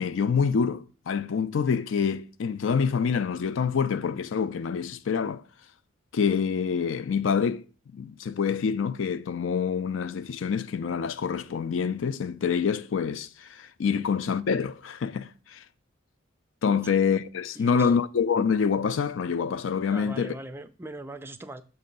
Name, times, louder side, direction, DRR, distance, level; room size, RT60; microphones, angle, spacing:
voice 1, 0.0-5.4 6.1-7.6 7.9-15.6 16.6-20.3, left 6 dB, 70° left, 0.4 m, -26 dB
voice 2, 17.5-17.9 19.9-21.6, right 1 dB, 10° right, 0.3 m, -40 dB
6.7 x 2.7 x 5.3 m
head